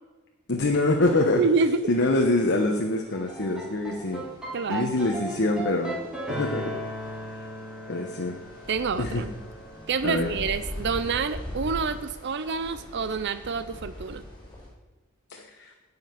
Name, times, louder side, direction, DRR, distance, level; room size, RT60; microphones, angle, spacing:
voice 1, 0.5-1.4 1.9-4.2 4.7-6.0 6.4-6.8 7.4-7.5 7.9-8.4 9.0-9.2 10.0-10.4 15.3-15.7, left 2 dB, 55° left, 2 dB, 1.1 m, -25 dB
sound 1, 1.2-14.7, left 1 dB, 20° left, 3.2 m, -43 dB
voice 2, 1.4-1.8 4.5-4.9 8.7-9.3 9.9-14.2, right 5 dB, 55° right, 11 dB, 0.5 m, -27 dB
sound 2, 3.1-11.3, right 1 dB, 5° right, 3.4 m, -37 dB
17.0 x 5.7 x 5.8 m, 1.2 s
head